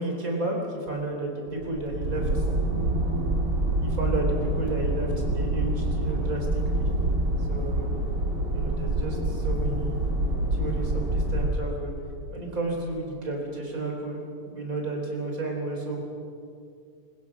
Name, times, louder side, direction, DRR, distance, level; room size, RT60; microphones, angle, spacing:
voice 1, 0.0-2.9 3.8-6.9 7.5-7.9 8.5-10.0 10.5-11.9 12.3-16.0, right 2 dB, 50° right, 1 dB, 4.6 m, -32 dB
sound 1, 1.5-11.5, right 1 dB, 85° right, 3.1 m, -26 dB
24.5 x 20.5 x 6.2 m, 2.3 s
omnidirectional pair, 1.8 m